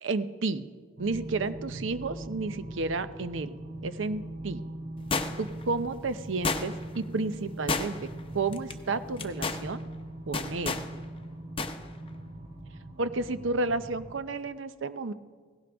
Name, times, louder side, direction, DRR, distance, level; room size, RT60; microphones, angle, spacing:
voice 1, 0.0-0.7 1.0-3.6 3.8-4.6 5.4-8.0 8.3-9.8 10.3-10.8 13.0-15.1, right 3 dB, 75° right, 12 dB, 0.7 m, -31 dB
sound 1, 1.0-14.1, right 1 dB, 60° right, 3.3 m, -41 dB
sound 2, 5.1-5.6 6.4-7.0 7.7-8.2 8.5-8.7 9.2-9.6 10.3-10.9 11.6-11.8 12.1-12.2, left 4 dB, 30° left, 0.8 m, -30 dB
16.5 x 16.5 x 3.5 m, 1.5 s
head